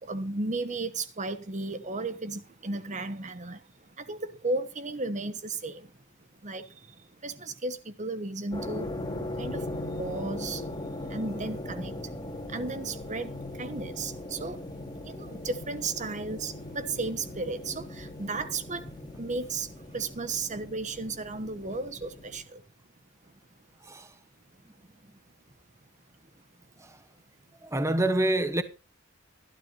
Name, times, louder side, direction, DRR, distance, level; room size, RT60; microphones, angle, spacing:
voice 1, 0.0-5.9 6.4-8.9 9.4-10.7 11.1-12.0 12.5-14.6 15.0-22.6, right 3 dB, 35° right, 1.2 m, -35 dB
sound 1, 8.5-22.4, left 1 dB, 20° left, 2.4 m, -39 dB
voice 2, 27.6-28.6, right 1 dB, 15° right, 1.0 m, -27 dB
13.5 x 12.5 x 4.1 m
head